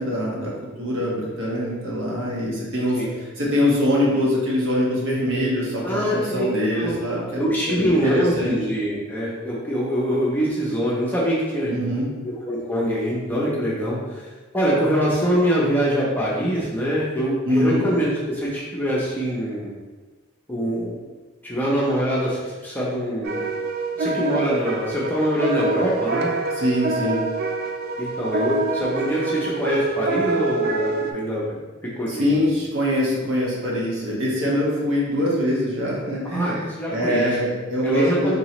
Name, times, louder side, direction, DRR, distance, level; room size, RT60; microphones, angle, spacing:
voice 1, 0.0-3.0 3.4-8.6 11.7-12.1 17.4-17.9 26.6-27.3 32.1-38.4, equal, 60° right, -5 dB, 1.0 m, -23 dB
voice 2, 5.8-6.5 6.8-7.0 7.4-11.7 12.2-14.3 14.5-19.7 20.5-21.0 21.4-23.5 24.0-26.3 28.0-31.4 31.8-32.3 36.3-37.4 37.8-38.4, equal, 10° left, -6 dB, 0.6 m, -24 dB
sound 1, 23.2-31.1, right 3 dB, 45° right, 0.3 m, -26 dB
3.9 x 3.0 x 3.0 m, 1.2 s
head